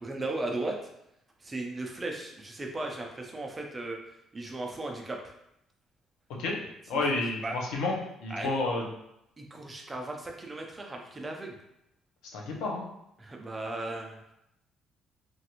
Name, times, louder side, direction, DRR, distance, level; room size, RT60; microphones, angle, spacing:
voice 1, 0.0-0.8 1.4-4.0 4.3-5.2 6.9-7.6 8.3-8.5 9.4-11.6 13.2-14.3, right 2 dB, 20° right, 1 dB, 0.4 m, -36 dB
voice 2, 6.9-7.9 8.2-8.9 12.3-12.8, left 3 dB, 90° left, -2 dB, 0.7 m, -30 dB
3.1 x 2.4 x 2.9 m, 0.82 s
cardioid pair, 135°, 0 cm